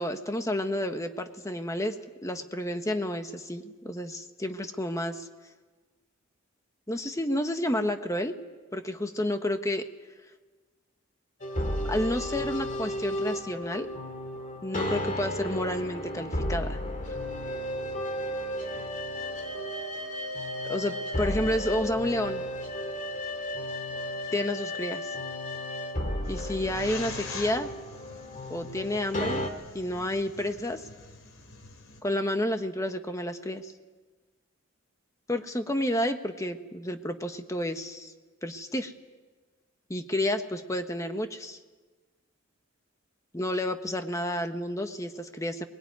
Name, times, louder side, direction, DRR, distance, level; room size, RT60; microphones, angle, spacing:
voice 1, 0.0-1.9 2.2-5.3 6.9-8.3 8.7-9.8 11.9-13.9 14.6-16.8 20.7-22.4 24.3-25.1 26.3-27.7 28.5-29.5 29.7-30.8 32.0-33.7 35.3-38.1 38.4-38.9 39.9-41.6 43.3-45.7, left 1 dB, 15° left, 7 dB, 1.3 m, -30 dB
sound 1, 11.4-29.5, left 1 dB, 40° left, 2.4 m, -33 dB
sound 2, 26.2-32.0, left 4 dB, 75° left, 3.0 m, -44 dB
21.5 x 21.5 x 9.5 m, 1.3 s
head